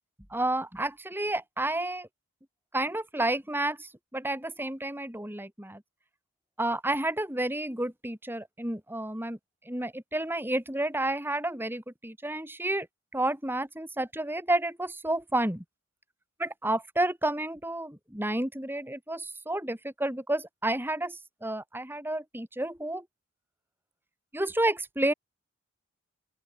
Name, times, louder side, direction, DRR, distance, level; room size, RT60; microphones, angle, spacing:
voice 1, 0.3-2.1 2.7-5.8 6.6-9.4 9.7-12.9 13.1-15.6 16.4-23.0 24.3-25.1, right 1 dB, 10° right, 4.0 m, -30 dB
open air
head